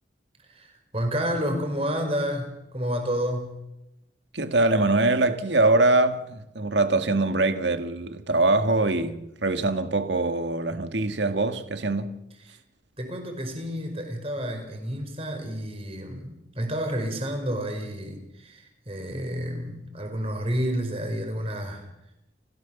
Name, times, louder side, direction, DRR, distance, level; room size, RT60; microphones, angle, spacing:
voice 1, 0.4-3.6 13.0-21.9, equal, 30° right, 5.0 m, -30 dB
voice 2, 4.3-12.2, right 2 dB, 75° right, 1.9 m, -23 dB
29.5 x 14.5 x 7.1 m
head